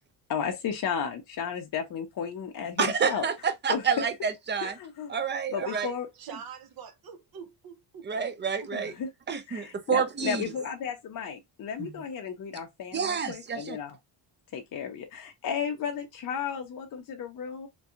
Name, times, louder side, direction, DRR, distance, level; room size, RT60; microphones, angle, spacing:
voice 1, 0.3-3.3 3.7-3.8 4.6-5.1 5.5-6.1 8.7-9.1 9.5-13.9 14.5-17.7, left 7 dB, 45° left, 0.6 m, -34 dB
voice 2, 2.8-4.8 5.1-5.9 8.0-8.9 9.3-10.4 11.8-11.9 12.9-13.8, right 6 dB, 25° right, 0.4 m, -29 dB
voice 3, 6.2-8.1 8.6-8.7, right 7 dB, 50° right, 0.7 m, -43 dB
2.7 x 2.2 x 2.4 m
cardioid pair, 100°, 48 cm